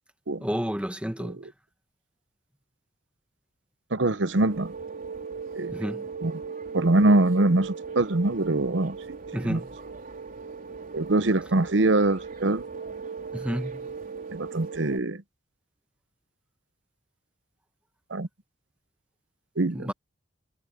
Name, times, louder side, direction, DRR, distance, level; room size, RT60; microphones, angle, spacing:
voice 1, 0.4-1.4 5.7-6.1 9.3-9.7 13.3-13.8 19.7-19.9, equal, 5° right, 1.4 m, -30 dB
voice 2, 3.9-4.7 5.6-5.8 6.2-6.3 6.7-9.0 9.4-9.6 10.9-12.6 14.3-15.2 18.1-18.3 19.6-19.9, right 2 dB, 75° right, 0.9 m, -23 dB
sound 1, 4.2-15.0, right 5 dB, 50° right, 4.1 m, -38 dB
head